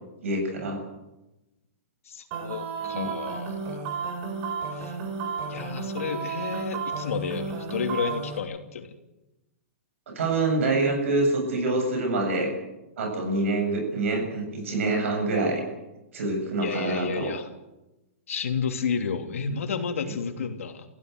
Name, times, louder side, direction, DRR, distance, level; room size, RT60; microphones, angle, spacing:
voice 1, 0.2-0.8 2.9-3.1 10.1-12.5 13.0-15.6 16.1-17.3, right 2 dB, 70° right, 3 dB, 7.9 m, -26 dB
voice 2, 2.0-3.8 4.7-5.0 5.5-8.9 16.6-17.5 18.3-20.9, left 6 dB, 90° left, 4 dB, 3.1 m, -31 dB
sound 1, 2.3-8.4, right 5 dB, 35° right, 3.7 m, -33 dB
30.0 x 16.0 x 8.1 m, 1.0 s
hypercardioid pair, 160°, 7 cm